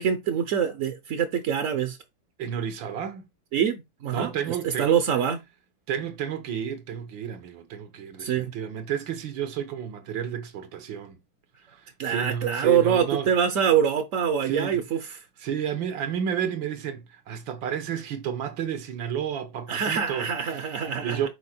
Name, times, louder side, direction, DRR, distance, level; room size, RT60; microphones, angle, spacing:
voice 1, 0.0-2.0 3.5-4.3 4.6-5.4 8.2-8.5 12.0-15.2 19.7-21.3, right 8 dB, 55° right, 0.9 m, -25 dB
voice 2, 2.4-3.3 4.1-5.0 5.9-11.2 12.0-13.3 14.4-14.8 15.4-20.3 21.0-21.3, right 8 dB, 80° right, 1.7 m, -31 dB
6.3 x 4.6 x 4.2 m
omnidirectional pair, 2.1 m